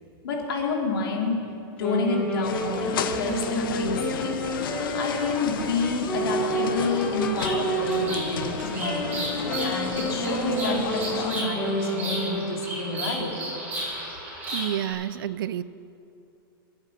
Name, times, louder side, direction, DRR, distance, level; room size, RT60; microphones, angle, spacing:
voice 1, 0.2-1.4 1.8-4.4 4.9-9.2 9.6-13.3, left 3 dB, 85° left, -1 dB, 3.5 m, -29 dB
Wind instrument woodwind instrument, 1.8-12.7, right 2 dB, 10° left, 1.8 m, -30 dB
sound 1, 2.4-11.4, left 7 dB, 65° left, 1.0 m, -33 dB
Bird vocalization bird call bird song, 6.4-14.9, right 1 dB, 15° right, 4.3 m, -35 dB
voice 2, 14.5-15.6, right 11 dB, 70° right, 17 dB, 0.5 m, -29 dB
21.0 x 8.8 x 5.9 m, 2.7 s
supercardioid pair, 175°, 12 cm